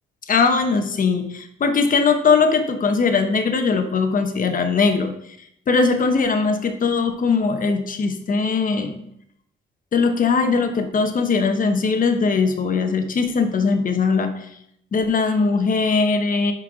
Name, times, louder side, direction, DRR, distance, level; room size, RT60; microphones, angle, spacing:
voice 1, 0.3-5.1 5.7-8.9 9.9-14.3 14.9-16.5, left 4 dB, 45° left, 7 dB, 1.0 m, -20 dB
5.9 x 4.6 x 4.8 m, 0.73 s
cardioid pair, 90°, 20 cm